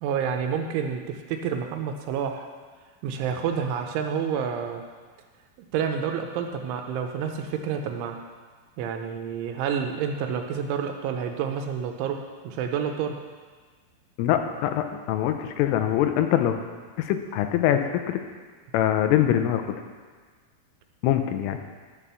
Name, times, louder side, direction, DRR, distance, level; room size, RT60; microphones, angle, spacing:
voice 1, 0.0-2.5 3.0-4.8 5.7-8.2 8.8-12.2 12.4-13.1, right 7 dB, 80° right, 4 dB, 3.1 m, -29 dB
voice 2, 14.2-16.6 17.0-18.2 18.7-19.6 21.0-21.6, left 11 dB, 85° left, 7 dB, 3.3 m, -23 dB
11.0 x 7.3 x 6.9 m, 1.5 s
omnidirectional pair, 5.7 m